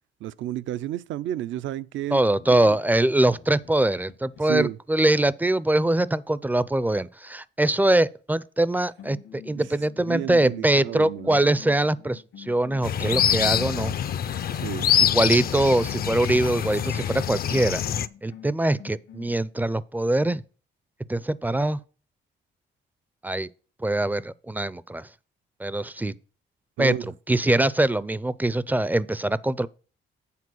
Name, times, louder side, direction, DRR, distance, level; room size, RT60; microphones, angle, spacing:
voice 1, 0.2-2.2 2.5-2.8 4.4-4.8 10.0-11.4 14.5-14.9 26.8-27.1, right 12 dB, 70° right, 0.5 m, -31 dB
voice 2, 2.1-13.9 15.0-17.8 18.2-20.4 21.1-21.8 23.2-23.5 23.8-25.1 25.6-26.1 26.8-29.7, right 1 dB, 10° right, 0.4 m, -23 dB
sound 1, 2.3-5.0 8.6-8.7 9.0-14.1 14.7-17.0 17.5-19.3, left 10 dB, 80° left, 1.6 m, -47 dB
sound 2, 12.8-18.1, left 9 dB, 50° left, 0.5 m, -25 dB
8.4 x 4.4 x 6.3 m
cardioid pair, 90°, 20 cm